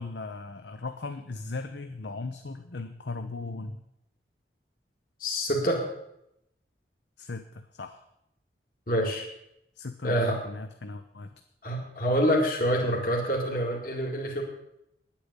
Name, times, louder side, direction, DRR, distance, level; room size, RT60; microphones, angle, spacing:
voice 1, 0.0-3.8 7.2-8.0 9.8-11.3, left 3 dB, 75° left, 7 dB, 0.7 m, -38 dB
voice 2, 5.2-5.8 8.9-9.2 10.0-10.4 11.6-14.4, equal, 50° left, 0 dB, 2.1 m, -26 dB
10.5 x 8.6 x 8.1 m, 0.79 s
head